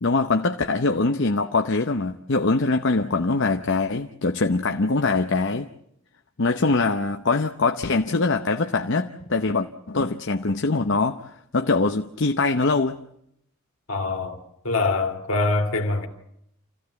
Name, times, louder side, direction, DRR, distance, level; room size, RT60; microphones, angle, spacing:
voice 1, 0.0-5.7 6.4-13.0, left 3 dB, 55° left, 0.8 m, -23 dB
voice 2, 13.9-16.1, left 3 dB, 75° left, 2.8 m, -24 dB
28.0 x 15.5 x 8.1 m
head